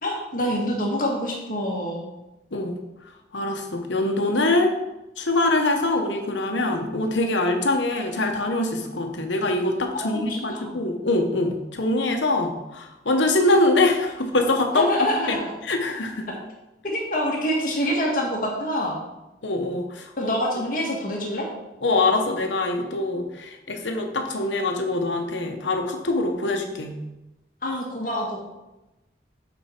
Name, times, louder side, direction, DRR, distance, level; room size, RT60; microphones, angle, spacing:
voice 1, 0.0-2.1 10.0-10.8 14.7-15.5 16.8-19.0 20.2-21.5 27.6-28.4, equal, 45° left, -2 dB, 1.7 m, -26 dB
voice 2, 3.3-4.8 5.2-14.9 15.2-16.3 19.4-20.3 21.8-27.0, left 2 dB, 80° left, 4 dB, 1.1 m, -24 dB
9.0 x 4.5 x 4.5 m, 0.98 s
head